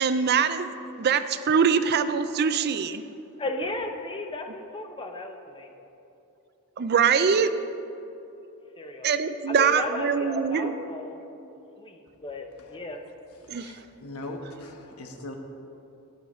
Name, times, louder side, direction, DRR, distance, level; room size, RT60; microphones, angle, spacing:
voice 1, 0.0-3.0 6.8-7.5 9.0-10.8 13.5-13.8, right 6 dB, 45° right, 11 dB, 0.4 m, -23 dB
voice 2, 3.4-5.7 8.8-9.1 9.5-11.2 11.8-13.0, left 1 dB, 25° left, 4 dB, 0.7 m, -35 dB
voice 3, 13.5-15.3, left 1 dB, 75° left, 3 dB, 1.2 m, -40 dB
21.0 x 7.8 x 3.1 m, 2.9 s
head